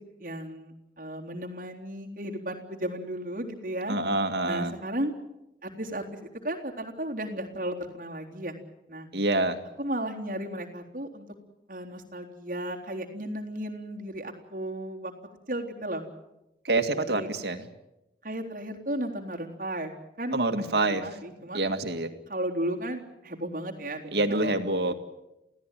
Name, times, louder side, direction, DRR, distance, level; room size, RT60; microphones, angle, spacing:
voice 1, 0.2-4.0 4.4-5.1 5.6-8.6 8.9-9.1 9.8-11.3 11.7-15.1 15.5-16.0 17.1-17.3 18.2-19.9 20.2-20.4 21.0-21.6 22.3-24.5 24.9-25.0, right 1 dB, 50° right, 1 dB, 3.7 m, -34 dB
voice 2, 3.9-4.7 9.1-9.6 16.6-17.7 20.3-21.0 21.5-22.1 24.1-24.9, right 2 dB, 70° right, 7 dB, 2.2 m, -26 dB
28.0 x 17.0 x 9.3 m, 0.92 s
head